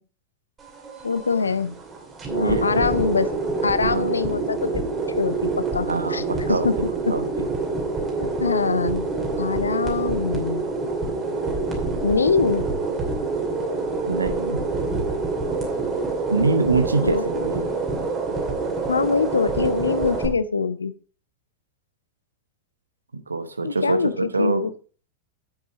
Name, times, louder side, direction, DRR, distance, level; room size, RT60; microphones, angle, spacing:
sound 1, 0.6-20.3, right 3 dB, 20° right, 2.6 m, -26 dB
voice 1, 1.0-1.8 2.3-3.3 3.6-4.9 5.2-6.2 6.5-7.1 8.2-9.1 9.4-10.7 12.0-12.6 17.0-17.2 18.9-20.9 23.6-24.7, left 4 dB, 75° left, 16 dB, 0.5 m, -24 dB
voice 2, 2.4-2.7 3.8-4.2 5.9-6.7 7.1-7.5 14.0-14.6 16.3-17.7 23.3-24.7, right 3 dB, 80° right, 10 dB, 0.9 m, -24 dB
8.1 x 7.4 x 3.9 m, 0.41 s
figure-of-eight pair, 90°, 0 cm